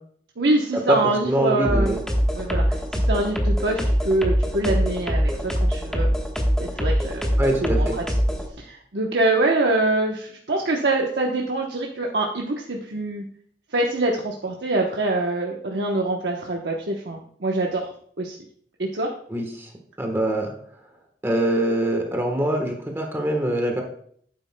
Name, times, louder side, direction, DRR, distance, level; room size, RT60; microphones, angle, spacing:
voice 1, 0.4-2.0 2.3-3.8 4.0-6.1 6.6-7.3 7.6-8.0 8.6-13.2 13.7-17.8 18.2-18.4 18.8-19.1, right 2 dB, 70° right, 0 dB, 1.0 m, -24 dB
voice 2, 0.9-2.0 7.4-8.0 19.3-19.7 20.0-20.5 21.2-23.8, right 1 dB, 15° right, 2 dB, 1.2 m, -23 dB
sound 1, 1.6-8.5, equal, 5° left, 1.2 m, -23 dB
11.5 x 9.5 x 2.2 m, 0.62 s
head